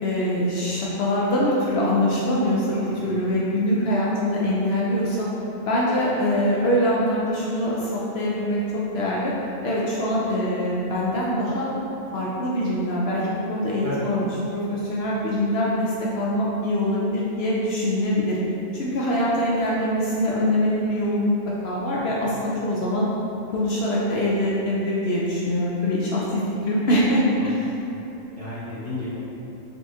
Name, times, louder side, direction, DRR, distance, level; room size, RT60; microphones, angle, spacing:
voice 1, 0.0-5.3 5.7-9.3 9.6-11.7 12.1-18.4 18.7-23.1 23.5-27.7, left 1 dB, 75° left, -5 dB, 0.5 m, -23 dB
voice 2, 28.3-29.2, left 2 dB, 25° left, -13 dB, 1.0 m, -33 dB
4.1 x 3.4 x 2.7 m, 2.9 s
omnidirectional pair, 1.6 m